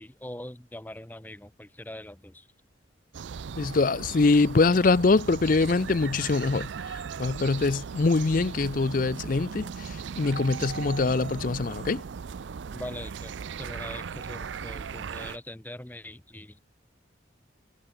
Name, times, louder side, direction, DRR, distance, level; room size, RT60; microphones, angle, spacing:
voice 1, 0.0-2.5 12.7-13.3 13.6-16.6, left 1 dB, 10° left, 0.8 m, -42 dB
sound 1, 3.1-15.4, right 6 dB, 75° right, 0.4 m, -38 dB
voice 2, 3.6-6.7 7.2-9.9 10.2-12.0, left 3 dB, 45° left, 0.5 m, -23 dB
head